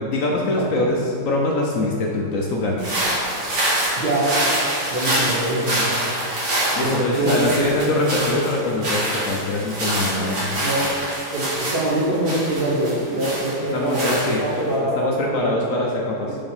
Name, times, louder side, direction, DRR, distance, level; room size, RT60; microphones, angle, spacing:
voice 1, 0.0-2.9 6.7-10.8 13.7-14.4 14.8-16.4, left 2 dB, 70° left, -1 dB, 0.7 m, -23 dB
voice 2, 0.6-0.9 4.0-4.4 4.9-5.9 6.8-7.5 10.6-11.0 11.3-15.6 16.3-16.4, right 1 dB, 50° right, -3 dB, 0.7 m, -24 dB
sound 1, 2.8-14.7, right 1 dB, 70° right, 2.5 m, -25 dB
5.2 x 4.8 x 5.5 m, 2.6 s
omnidirectional pair, 2.1 m